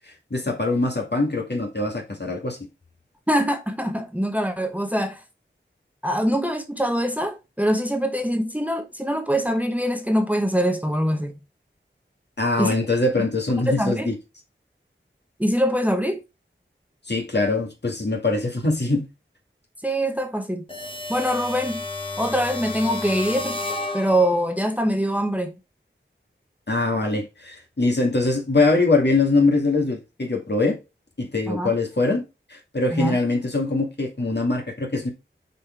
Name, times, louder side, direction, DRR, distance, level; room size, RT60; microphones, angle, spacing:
voice 1, 0.1-2.6 12.4-14.2 17.1-19.1 26.7-30.8 31.2-32.2 32.5-35.1, left 2 dB, 55° left, 2.3 m, -23 dB
voice 2, 3.3-5.2 6.0-11.4 12.6-12.7 13.2-13.3 13.7-14.1 15.4-16.2 19.8-20.6 21.1-21.8 22.2-23.6 23.9-25.5 31.5-31.7 32.9-33.2, equal, 5° right, 1.0 m, -23 dB
sound 1, 20.7-24.6, left 2 dB, 25° left, 1.3 m, -31 dB
6.6 x 4.4 x 4.6 m
wide cardioid pair, 55°, 20 cm